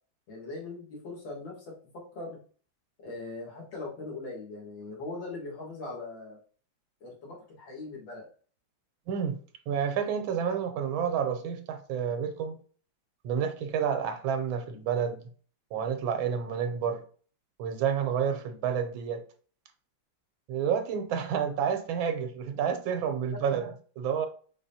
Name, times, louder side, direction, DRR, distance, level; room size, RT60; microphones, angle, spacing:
voice 1, 0.3-2.4 3.0-6.4 7.0-8.3, left 3 dB, 75° left, 2.4 m, -40 dB
voice 2, 9.1-9.4 9.7-12.6 13.2-15.2 15.7-17.0 17.6-19.2 20.5-24.3, right 7 dB, 90° right, 1.5 m, -29 dB
5.1 x 3.6 x 2.7 m
omnidirectional pair, 2.1 m